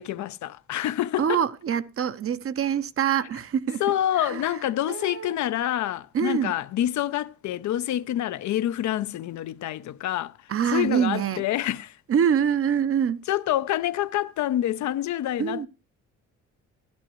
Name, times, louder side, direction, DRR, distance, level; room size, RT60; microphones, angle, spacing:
voice 1, 0.0-1.4 3.8-12.0 13.3-15.7, left 12 dB, 70° left, 0.6 m, -27 dB
voice 2, 1.2-3.8 4.2-4.6 4.9-5.3 6.1-6.5 10.5-11.4 12.1-13.2 15.4-15.7, right 8 dB, 50° right, 0.8 m, -25 dB
14.0 x 12.0 x 3.1 m
cardioid pair, 90°, 30 cm